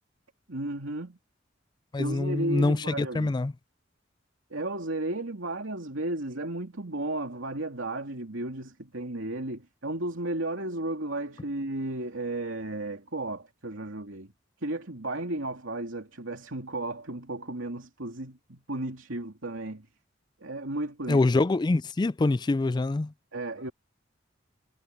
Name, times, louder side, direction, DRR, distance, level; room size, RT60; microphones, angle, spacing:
voice 1, 0.5-1.2 2.0-3.3 4.5-14.3 14.6-19.9 20.4-21.2 23.3-23.7, right 2 dB, 80° right, 2.9 m, -34 dB
voice 2, 1.9-3.5 21.1-23.1, left 2 dB, 20° left, 0.3 m, -25 dB
head